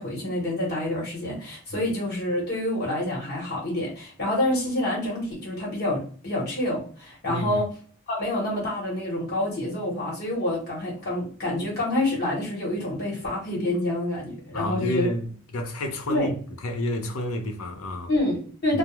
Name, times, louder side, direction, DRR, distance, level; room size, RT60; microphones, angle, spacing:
voice 1, 0.0-7.7 8.1-15.1 16.1-16.3 18.1-18.8, left 1 dB, 50° left, 1.0 m, -27 dB
voice 2, 7.3-7.6 14.5-16.3 16.6-18.1, left 1 dB, 90° left, 0.5 m, -30 dB
2.2 x 2.0 x 3.0 m
head